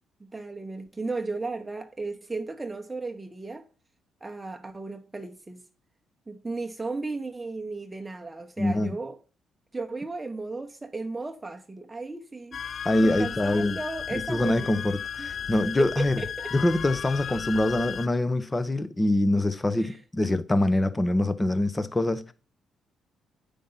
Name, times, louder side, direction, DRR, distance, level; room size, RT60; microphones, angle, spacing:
voice 1, 0.2-3.6 4.2-5.7 6.3-9.2 9.7-14.8 15.2-15.3 15.8-16.5 19.8-20.0, right 3 dB, 15° right, 1.0 m, -35 dB
voice 2, 8.6-9.0 12.8-13.8 14.1-16.2 16.5-22.3, left 1 dB, 20° left, 0.9 m, -24 dB
sound 1, 12.5-18.1, left 8 dB, 50° left, 0.4 m, -35 dB
9.2 x 5.2 x 5.7 m
cardioid pair, 90°, 0 cm